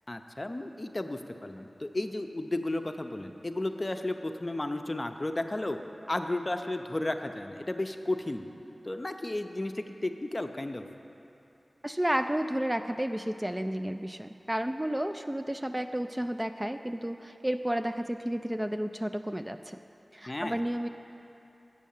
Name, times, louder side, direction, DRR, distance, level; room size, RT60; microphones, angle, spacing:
voice 1, 0.1-5.8 6.1-8.5 8.8-10.9 20.3-20.6, left 1 dB, 35° left, 6 dB, 0.6 m, -33 dB
voice 2, 11.8-19.8 20.1-20.9, right 1 dB, 15° right, 7 dB, 0.3 m, -32 dB
8.3 x 6.3 x 7.1 m, 2.8 s
cardioid pair, 45°, 0 cm